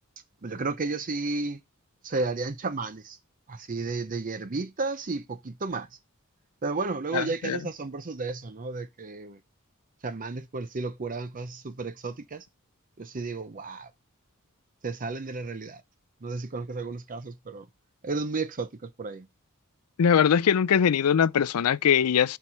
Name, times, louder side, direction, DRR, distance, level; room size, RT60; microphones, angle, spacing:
voice 1, 0.4-1.6 2.0-3.2 3.5-6.0 6.6-9.4 10.0-12.5 13.0-13.9 14.8-15.8 16.2-17.7 18.0-19.3, right 3 dB, 40° right, 0.6 m, -33 dB
voice 2, 7.1-7.6 20.0-22.4, left 8 dB, 90° left, 0.4 m, -22 dB
11.5 x 4.6 x 4.3 m
head